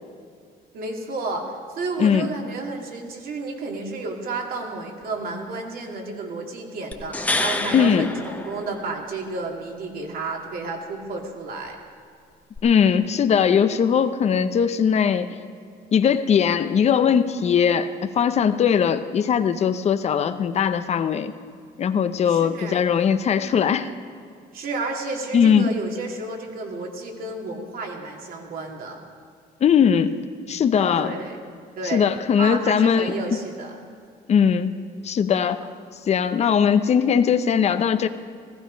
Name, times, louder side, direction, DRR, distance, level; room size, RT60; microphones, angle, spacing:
voice 1, 0.7-11.8 22.3-22.8 24.5-29.0 30.9-31.4 31.8-32.1 32.4-33.8, right 3 dB, 60° right, 1 dB, 2.5 m, -31 dB
sound 1, 6.9-9.2 12.6-12.7, left 2 dB, 10° left, 1.0 m, -28 dB
voice 2, 7.7-8.1 12.6-15.3 15.9-21.3 21.8-23.9 25.3-25.7 29.6-30.2 30.5-31.1 31.8-33.1 34.3-34.7 35.0-35.6 36.1-38.1, left 7 dB, 40° left, 10 dB, 0.7 m, -20 dB
15.5 x 15.0 x 5.2 m, 2.3 s
cardioid pair, 110°, 17 cm